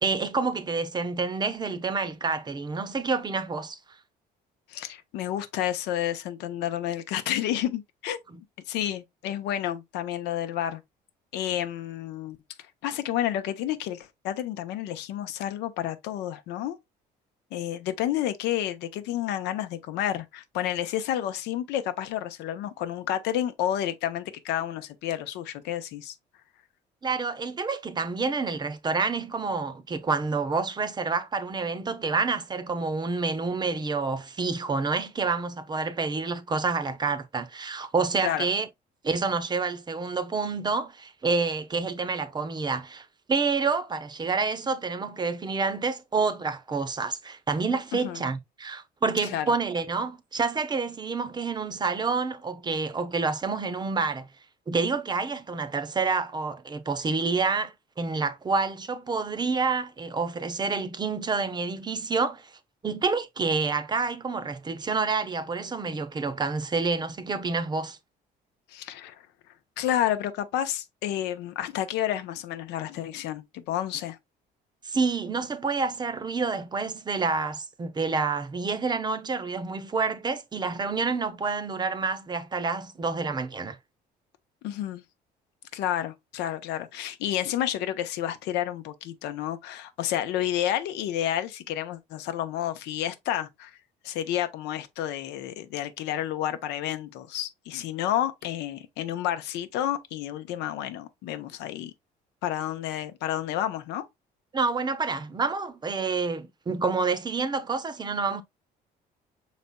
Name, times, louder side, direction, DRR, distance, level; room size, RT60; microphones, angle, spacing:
voice 1, 0.0-3.8 27.0-38.7 39.0-54.3 54.7-62.5 62.8-68.0 74.8-83.8 104.5-108.4, right 4 dB, 25° right, 0.7 m, -28 dB
voice 2, 4.7-10.8 11.3-12.4 12.8-16.8 17.5-26.1 38.2-38.5 47.9-48.2 49.3-49.5 68.7-69.2 69.8-74.2 84.6-85.0 85.7-93.7 94.0-101.9 102.4-104.1, left 11 dB, 90° left, 0.8 m, -30 dB
5.5 x 4.1 x 2.2 m
cardioid pair, 110°, 17 cm